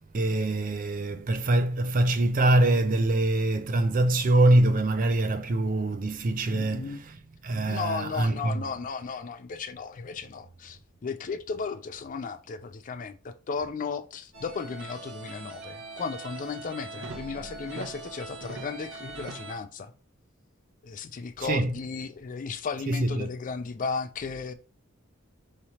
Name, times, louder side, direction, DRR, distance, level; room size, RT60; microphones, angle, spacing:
voice 1, 0.1-7.1 7.4-8.6 21.4-21.7 22.9-23.3, right 1 dB, 40° right, 0.4 m, -24 dB
voice 2, 6.5-7.0 7.7-19.9 20.8-24.5, left 5 dB, 40° left, 0.4 m, -35 dB
sound 1, 14.3-19.6, right 3 dB, 55° right, 1.0 m, -41 dB
4.9 x 3.1 x 2.8 m
head